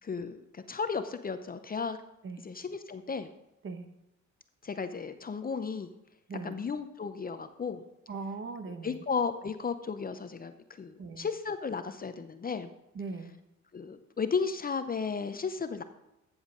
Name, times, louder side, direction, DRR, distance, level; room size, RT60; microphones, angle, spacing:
voice 1, 0.0-2.0 2.4-3.3 4.6-5.9 6.4-7.8 8.8-10.5 10.8-12.7 13.7-15.8, left 5 dB, 30° left, 10 dB, 0.6 m, -34 dB
voice 2, 8.1-9.0 11.0-11.3 12.9-13.3, right 4 dB, 40° right, 8 dB, 1.2 m, -39 dB
13.5 x 7.2 x 3.8 m, 0.88 s
cardioid pair, 90°, 30 cm